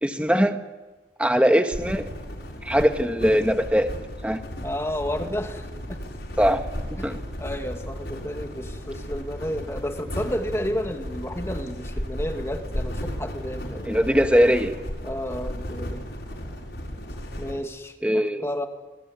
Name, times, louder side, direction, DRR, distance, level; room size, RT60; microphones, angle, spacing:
voice 1, 0.0-0.6 1.2-2.1 2.6-3.9 4.2-4.4 6.4-6.6 6.9-7.2 13.8-14.7 18.0-18.5, equal, 5° right, 6 dB, 1.6 m, -21 dB
sound 1, 1.7-17.6, equal, 65° left, 7.0 m, -34 dB
voice 2, 4.6-6.0 7.0-7.1 7.4-14.0 15.0-16.0 17.4-18.7, equal, 15° left, 4 dB, 2.5 m, -31 dB
29.5 x 20.0 x 9.7 m, 1.2 s
head